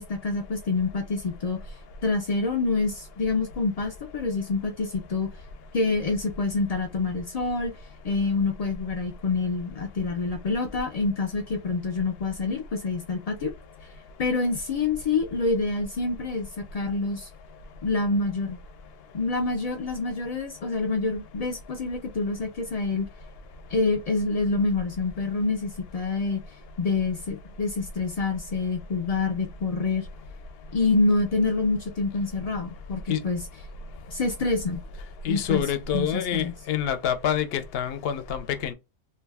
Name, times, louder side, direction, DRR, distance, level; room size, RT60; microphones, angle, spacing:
voice 1, 0.0-1.6 2.0-5.3 5.7-7.8 8.0-13.5 14.2-16.5 16.7-17.3 17.8-18.6 19.1-23.1 23.7-26.4 26.8-30.1 30.7-33.4 34.1-34.8 35.3-35.6 35.9-36.5, left 3 dB, 90° left, 0.3 m, -27 dB
voice 2, 35.2-38.7, left 9 dB, 65° left, 0.7 m, -27 dB
2.5 x 2.2 x 3.3 m
omnidirectional pair, 1.3 m